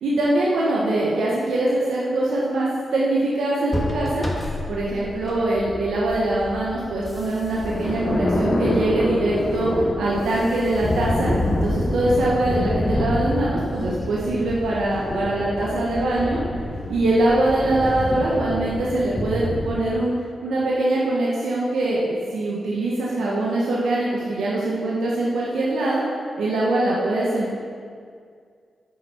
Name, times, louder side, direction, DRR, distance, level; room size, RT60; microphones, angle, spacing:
voice 1, 0.0-4.3 4.7-9.7 10.0-16.4 16.9-20.1 20.4-26.0 26.4-27.6, right 1 dB, 85° right, -5 dB, 1.0 m, -23 dB
sound 1, 3.7-19.4, equal, 15° left, 1.4 m, -36 dB
sound 2, 6.7-19.8, left 1 dB, 30° left, 1.1 m, -27 dB
7.3 x 6.0 x 4.3 m, 2.1 s
cardioid pair, 55°, 0 cm